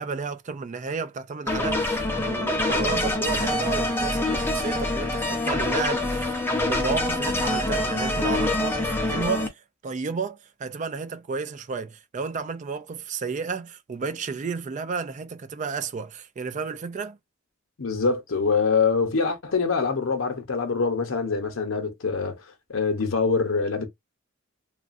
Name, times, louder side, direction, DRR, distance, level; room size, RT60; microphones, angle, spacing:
voice 1, 0.0-17.2, right 5 dB, 35° right, 0.4 m, -32 dB
sound 1, 1.5-9.5, left 2 dB, 10° left, 0.7 m, -25 dB
voice 2, 17.8-22.4 22.7-23.9, left 4 dB, 75° left, 0.8 m, -24 dB
3.1 x 2.4 x 2.5 m
head